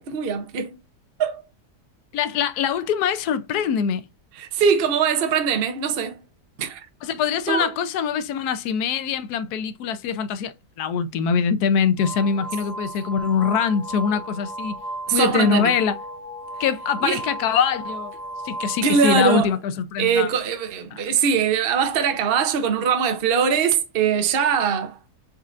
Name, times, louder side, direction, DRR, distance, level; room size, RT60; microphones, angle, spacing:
voice 1, 0.1-0.8 1.2-1.4 4.4-6.2 6.6-6.8 7.5-7.7 15.1-15.7 17.0-17.2 18.8-19.5 20.0-25.0, right 6 dB, 50° right, 0.8 m, -21 dB
voice 2, 2.1-4.1 7.0-14.7 15.1-16.0 16.6-18.1 18.4-20.3 20.9-21.0, left 7 dB, 75° left, 1.1 m, -23 dB
sound 1, 12.0-19.5, right 1 dB, 55° left, 2.1 m, -35 dB
4.4 x 3.6 x 2.4 m
omnidirectional pair, 1.8 m